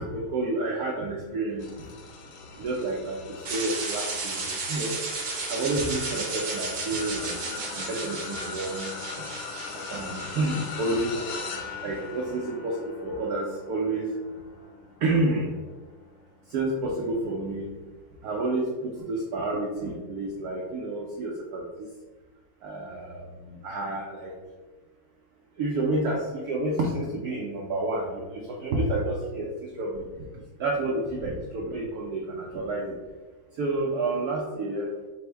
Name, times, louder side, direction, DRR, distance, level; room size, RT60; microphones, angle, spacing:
voice 1, 0.0-1.7 2.6-3.2 3.5-5.0 5.5-7.4 7.6-8.9 9.7-11.2 11.8-14.1 15.0-15.5 16.5-17.7 18.2-21.9 22.6-24.3 25.6-30.0 30.6-32.9 33.6-34.9, right 2 dB, 80° right, -2 dB, 0.8 m, -29 dB
sound 1, 1.6-17.1 17.6-17.9 19.1-19.2, left 5 dB, 70° left, 1.2 m, -40 dB
sound 2, 3.4-11.5, right 3 dB, 60° right, 1.2 m, -34 dB
4.3 x 2.0 x 4.4 m, 1.3 s
omnidirectional pair, 2.3 m